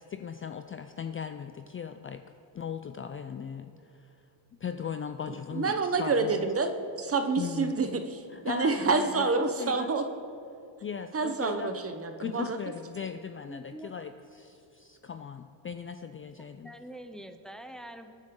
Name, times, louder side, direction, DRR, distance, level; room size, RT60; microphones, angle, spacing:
voice 1, 0.0-2.2 2.5-4.2 4.6-6.4 7.4-7.7 8.3-9.9 10.8-11.8 12.2-16.7, left 7 dB, 30° left, 8 dB, 0.4 m, -38 dB
voice 2, 5.5-6.7 7.0-10.1 11.1-12.6, right 4 dB, 30° right, 8 dB, 0.9 m, -28 dB
voice 3, 13.5-14.0 16.6-18.1, right 1 dB, ahead, 7 dB, 0.7 m, -44 dB
25.5 x 10.5 x 3.7 m, 2.7 s
cardioid pair, 140°, 44 cm